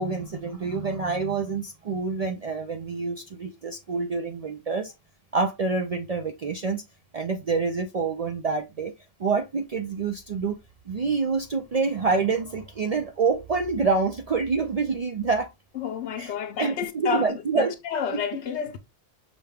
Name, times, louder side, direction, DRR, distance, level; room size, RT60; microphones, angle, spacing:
voice 1, 0.0-4.9 5.3-6.8 7.1-8.9 9.2-10.6 10.9-15.5 16.2-17.8 18.1-18.2, right 4 dB, 50° right, 0.5 m, -27 dB
voice 2, 15.8-18.8, left 7 dB, 85° left, 1.0 m, -30 dB
6.1 x 2.2 x 3.4 m
omnidirectional pair, 1.1 m